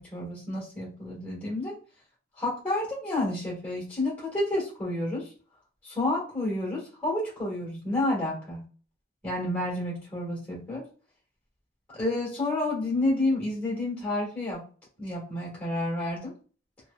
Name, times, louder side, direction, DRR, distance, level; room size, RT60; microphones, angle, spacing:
voice 1, 0.0-1.7 2.4-5.3 5.8-8.6 9.2-10.8 11.9-14.6 15.0-16.3, left 1 dB, 10° left, -5 dB, 1.5 m, -30 dB
3.0 x 2.2 x 2.3 m, 0.39 s
head